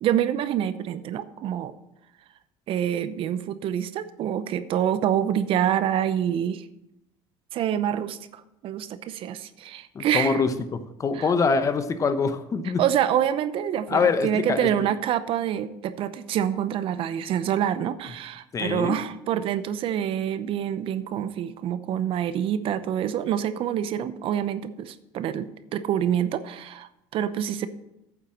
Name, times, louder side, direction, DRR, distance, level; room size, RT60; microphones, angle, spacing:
voice 1, 0.0-1.7 2.7-6.7 7.5-10.4 11.2-11.3 12.8-27.7, right 10 dB, 50° right, 13 dB, 0.7 m, -26 dB
voice 2, 9.9-12.8 13.9-14.9 18.5-19.0, left 5 dB, 30° left, 10 dB, 0.9 m, -24 dB
9.1 x 7.4 x 6.2 m, 0.87 s
cardioid pair, 115°, 11 cm